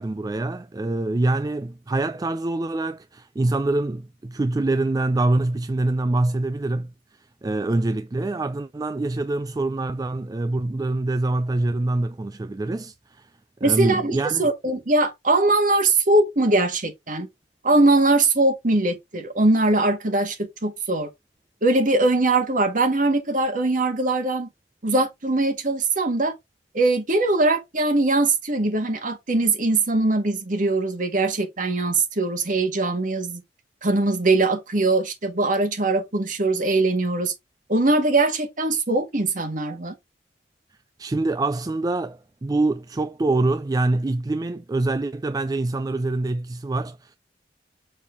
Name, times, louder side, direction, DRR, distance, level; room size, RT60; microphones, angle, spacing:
voice 1, 0.0-6.9 7.4-13.3 13.6-14.4 41.0-47.2, right 2 dB, 20° right, 0.3 m, -25 dB
voice 2, 13.6-17.3 17.6-21.1 21.6-24.5 24.8-26.3 26.7-33.4 33.8-37.3 37.7-39.9, right 2 dB, 45° right, 1.6 m, -21 dB
7.1 x 4.2 x 3.6 m
head